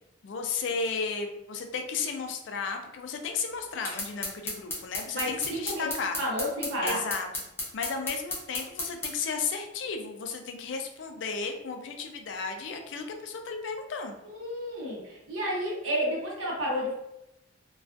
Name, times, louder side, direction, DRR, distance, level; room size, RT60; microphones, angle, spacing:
voice 1, 0.2-6.2 6.8-7.3 7.7-14.2, left 5 dB, 70° left, 4 dB, 0.4 m, -34 dB
sound 1, 3.8-9.1, left 2 dB, 10° left, 0.6 m, -34 dB
voice 2, 5.1-7.0 14.2-16.9, equal, 90° right, -3 dB, 0.8 m, -31 dB
2.3 x 2.3 x 2.4 m, 0.87 s
head